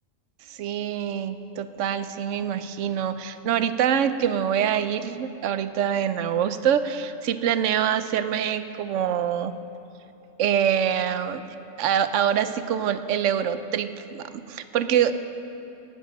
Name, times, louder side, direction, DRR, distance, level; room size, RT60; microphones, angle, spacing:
voice 1, 0.5-9.6 10.4-11.4 11.8-15.1, right 9 dB, 80° right, 11 dB, 1.0 m, -25 dB
17.5 x 12.5 x 5.3 m, 2.8 s
omnidirectional pair, 1.3 m